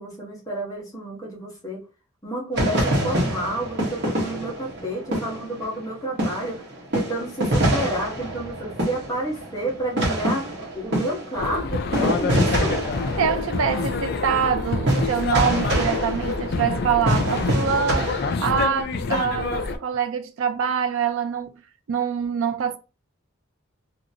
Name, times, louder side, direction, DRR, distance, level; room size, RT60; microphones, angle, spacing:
voice 1, 0.0-1.8 2.2-6.6 6.9-12.8, right 1 dB, 15° left, 1.1 m, -30 dB
sound 1, 2.6-5.9 6.2-18.8, right 1 dB, 55° right, 1.2 m, -26 dB
sound 2, 11.3-19.8, left 4 dB, 50° left, 0.4 m, -27 dB
voice 2, 13.2-21.6 21.9-22.8, right 7 dB, 75° right, 0.4 m, -25 dB
2.9 x 2.6 x 2.7 m
head